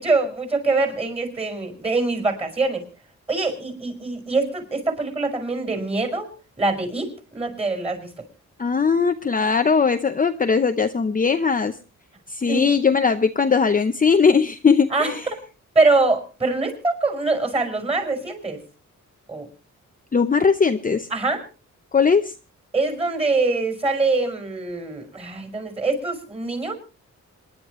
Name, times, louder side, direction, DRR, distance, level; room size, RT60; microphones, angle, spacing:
voice 1, 0.0-2.9 3.3-6.3 6.6-8.1 12.5-12.7 14.9-15.4 15.8-18.6 19.3-19.5 21.1-21.4 22.7-26.7, right 3 dB, 20° right, 6 dB, 5.3 m, -24 dB
voice 2, 8.6-11.7 12.3-15.2 20.1-21.1 21.9-22.3, left 5 dB, 30° left, 7 dB, 0.7 m, -19 dB
27.0 x 11.0 x 3.1 m, 0.33 s
wide cardioid pair, 120°, 30 cm